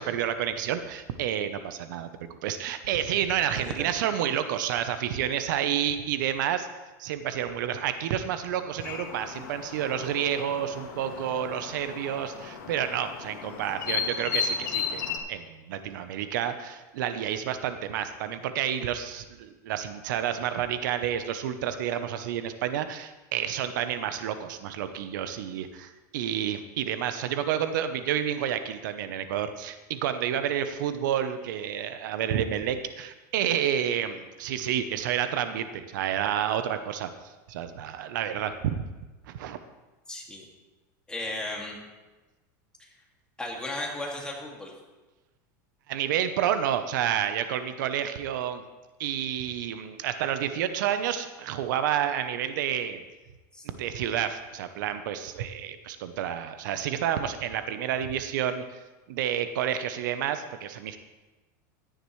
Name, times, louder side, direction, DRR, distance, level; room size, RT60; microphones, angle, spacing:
voice 1, 0.0-2.1 2.4-6.7 7.0-37.1 37.5-38.8 39.3-39.6 45.9-48.6 49.0-53.0 53.8-58.6 59.1-61.0, right 10 dB, 80° right, 10 dB, 0.8 m, -29 dB
voice 2, 3.5-3.9 40.1-40.4 41.1-41.8 42.8-42.9 43.4-44.7 53.5-53.6, left 1 dB, 10° left, -1 dB, 2.2 m, -35 dB
sound 1, 8.8-15.2, left 6 dB, 85° left, 1.7 m, -34 dB
14.0 x 10.5 x 3.2 m, 1.1 s
supercardioid pair, 135°, 10 cm